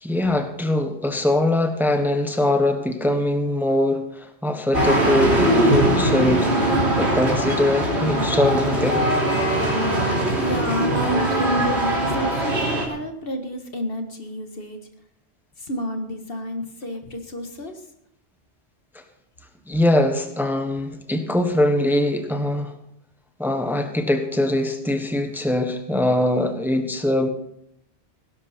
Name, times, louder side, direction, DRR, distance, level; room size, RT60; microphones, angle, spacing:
voice 1, 0.0-6.5 7.0-9.1 18.9-19.0 19.7-22.7 23.4-27.3, left 1 dB, ahead, 6 dB, 1.2 m, -22 dB
sound 1, 4.7-12.8, right 1 dB, 85° right, 3.5 m, -21 dB
voice 2, 10.4-14.8 15.6-17.7, left 1 dB, 60° left, 6 dB, 1.7 m, -30 dB
18.0 x 11.0 x 4.3 m, 0.75 s
omnidirectional pair, 1.1 m